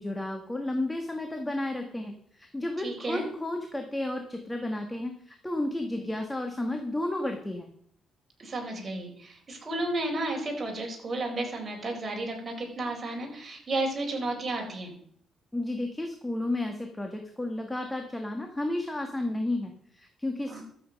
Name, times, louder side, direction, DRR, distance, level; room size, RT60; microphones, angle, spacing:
voice 1, 0.0-7.7 15.5-20.6, left 1 dB, 10° left, 4 dB, 1.5 m, -32 dB
voice 2, 2.8-3.2 8.4-14.9 20.5-20.6, right 2 dB, 30° right, 1 dB, 4.3 m, -32 dB
12.5 x 7.9 x 5.3 m, 0.64 s
cardioid pair, 90°, 0 cm